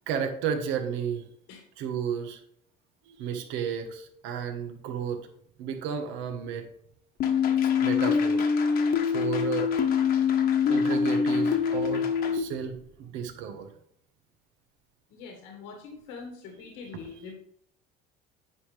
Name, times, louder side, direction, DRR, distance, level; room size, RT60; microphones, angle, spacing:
voice 1, 0.1-1.3 1.8-2.4 3.1-5.3 5.6-6.7 7.8-8.4 9.1-9.7 10.7-13.7 16.8-17.1, right 7 dB, 75° right, 6 dB, 1.4 m, -33 dB
sound 1, 7.2-12.4, left 6 dB, 50° left, 1.2 m, -24 dB
voice 2, 15.1-17.3, left 5 dB, 80° left, 1 dB, 1.8 m, -43 dB
9.9 x 5.7 x 3.4 m, 0.69 s
cardioid pair, 140°, 20 cm